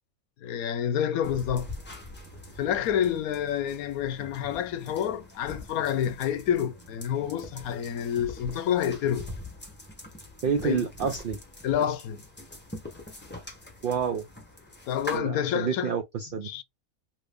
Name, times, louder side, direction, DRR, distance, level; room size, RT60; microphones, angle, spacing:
voice 1, 0.4-1.7 2.6-9.3 10.6-10.8 11.6-12.2 14.9-15.9 16.4-16.6, left 9 dB, 80° left, 1.1 m, -28 dB
sound 1, 1.2-15.2, left 1 dB, 10° left, 0.6 m, -43 dB
voice 2, 10.4-11.4 13.8-14.3 15.1-16.5, right 7 dB, 75° right, 0.4 m, -29 dB
2.8 x 2.6 x 3.4 m
omnidirectional pair, 1.5 m